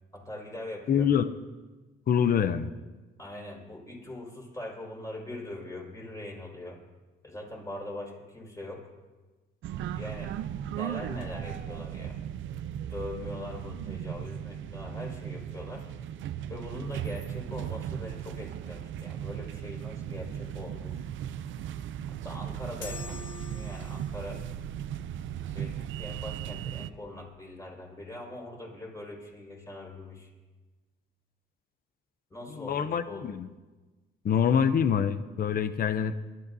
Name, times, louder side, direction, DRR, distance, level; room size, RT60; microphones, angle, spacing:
voice 1, 0.1-1.1 3.2-6.8 7.2-8.8 9.9-10.3 10.6-12.2 12.9-15.9 16.5-21.0 22.1-24.4 25.5-30.3 32.3-33.3, left 1 dB, 15° left, -1 dB, 5.2 m, -42 dB
voice 2, 0.9-1.3 2.1-2.7 32.5-33.5 34.2-36.2, left 8 dB, 45° left, 12 dB, 0.6 m, -25 dB
sound 1, 9.6-26.9, right 10 dB, 75° right, 0.6 m, -37 dB
sound 2, 22.8-24.3, left 6 dB, 75° left, 1.5 m, -44 dB
27.5 x 12.5 x 2.7 m, 1.2 s
cardioid pair, 90°, 20 cm